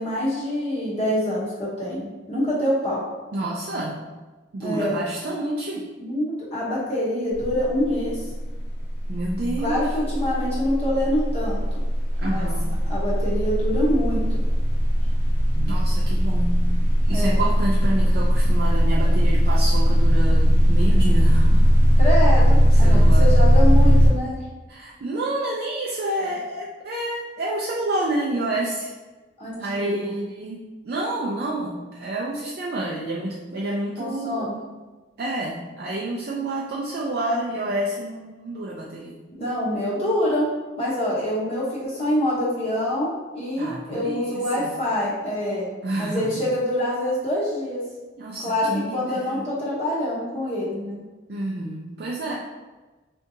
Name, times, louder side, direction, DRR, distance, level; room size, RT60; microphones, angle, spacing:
voice 1, 0.0-3.0 4.6-5.0 6.0-8.2 9.6-11.8 12.2-12.5 12.9-14.4 17.1-17.4 22.0-24.4 29.4-30.1 34.0-34.6 39.4-40.5 40.8-45.7 46.0-47.8 48.4-51.0, left 1 dB, 30° left, -8 dB, 0.8 m, -25 dB
voice 2, 3.3-4.0 4.5-5.8 9.1-9.8 12.2-12.8 15.6-16.6 17.1-21.7 22.6-23.4 24.7-28.9 29.6-34.5 35.2-39.2 43.6-44.7 45.8-46.4 48.2-49.5 51.3-52.3, right 1 dB, 55° right, -3 dB, 0.4 m, -29 dB
sound 1, 7.3-7.7 8.0-24.1, equal, 70° left, 0.9 m, -18 dB
3.6 x 2.7 x 2.6 m, 1.2 s
head